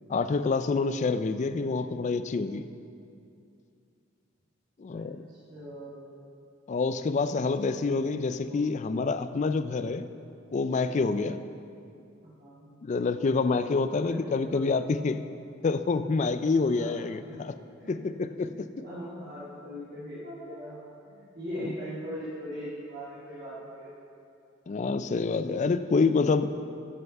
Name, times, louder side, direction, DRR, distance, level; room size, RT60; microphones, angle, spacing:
voice 1, 0.1-2.7 4.8-5.2 6.7-10.1 10.5-11.4 12.8-15.2 15.6-17.5 17.9-18.7 24.7-26.5, left 4 dB, 35° left, 11 dB, 0.3 m, -27 dB
voice 2, 1.6-2.0 4.9-6.1 8.4-8.8 12.2-12.7 14.1-14.9 16.7-16.9 17.3-17.4 17.8-18.0 18.3-24.0, equal, 50° right, -11 dB, 2.1 m, -41 dB
13.5 x 5.7 x 5.4 m, 2.5 s
head